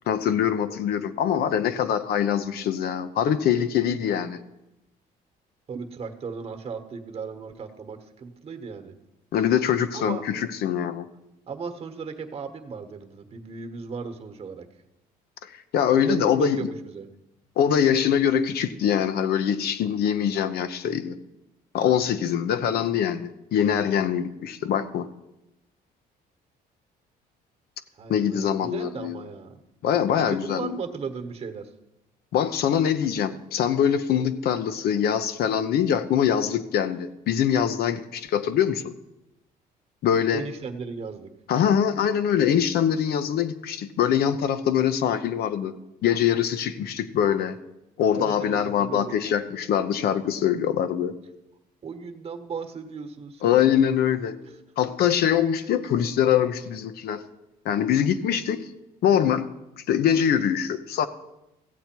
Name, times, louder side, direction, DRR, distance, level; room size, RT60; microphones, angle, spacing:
voice 1, 0.1-4.4 9.3-11.1 15.5-16.7 17.6-21.1 21.7-25.1 28.1-29.3 29.8-30.8 32.3-38.9 40.0-40.5 41.5-45.7 46.0-47.6 48.0-51.1 53.4-54.4 54.8-57.2 57.6-58.6 59.0-59.5 59.9-61.1, left 9 dB, 70° left, 10 dB, 0.7 m, -23 dB
voice 2, 5.7-8.9 9.9-10.2 11.5-14.7 15.9-17.1 28.0-29.6 30.3-31.7 40.3-41.3 48.1-49.2 51.8-53.9 54.4-54.5, right 5 dB, 35° right, 7 dB, 1.2 m, -36 dB
15.0 x 8.1 x 4.5 m, 0.92 s
cardioid pair, 110°, 17 cm